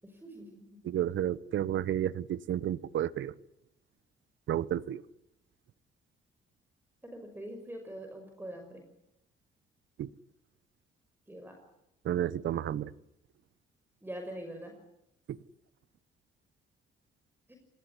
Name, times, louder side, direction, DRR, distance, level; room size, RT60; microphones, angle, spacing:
voice 1, 0.0-0.8 7.0-8.8 11.3-11.6 14.0-14.7 17.5-17.6, right 1 dB, 10° right, 4 dB, 5.9 m, -44 dB
voice 2, 0.8-3.3 4.5-5.0 10.0-10.1 12.0-12.9 15.3-15.4, right 11 dB, 70° right, 18 dB, 1.2 m, -31 dB
27.0 x 19.5 x 9.9 m, 0.88 s
cardioid pair, 90°, 20 cm